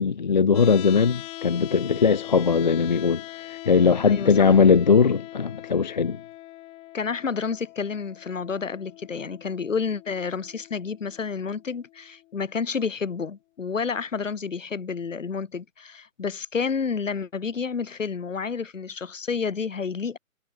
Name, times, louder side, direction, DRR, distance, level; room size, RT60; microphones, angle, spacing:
voice 1, 0.0-6.2, left 5 dB, 35° left, 0.6 m, -20 dB
sound 1, 0.5-12.6, left 18 dB, 15° left, 3.6 m, -42 dB
voice 2, 4.1-4.5 6.9-20.2, left 5 dB, 65° left, 6.6 m, -30 dB
hypercardioid pair, 155°, 41 cm